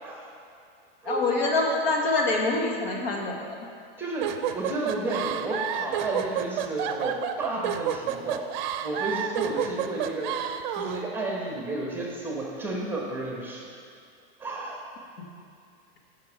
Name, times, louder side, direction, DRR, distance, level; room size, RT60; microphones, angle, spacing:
voice 1, 1.0-3.5, left 2 dB, 75° left, 0 dB, 1.6 m, -25 dB
voice 2, 4.0-8.5 8.8-10.4 10.7-13.7 14.4-14.8, right 2 dB, 5° right, -2 dB, 1.1 m, -32 dB
sound 1, 4.2-11.0, right 10 dB, 50° right, 0.6 m, -30 dB
9.3 x 5.9 x 4.7 m, 2.5 s
supercardioid pair, 145°, 30 cm